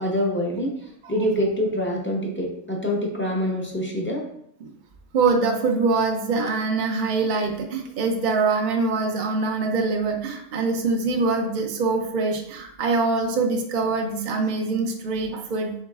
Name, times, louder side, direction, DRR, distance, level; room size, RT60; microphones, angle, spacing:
voice 1, 0.0-4.3, equal, 15° left, -2 dB, 0.4 m, -25 dB
voice 2, 5.1-15.7, right 4 dB, 60° right, 2 dB, 0.5 m, -24 dB
4.5 x 3.9 x 2.4 m, 0.72 s
omnidirectional pair, 1.3 m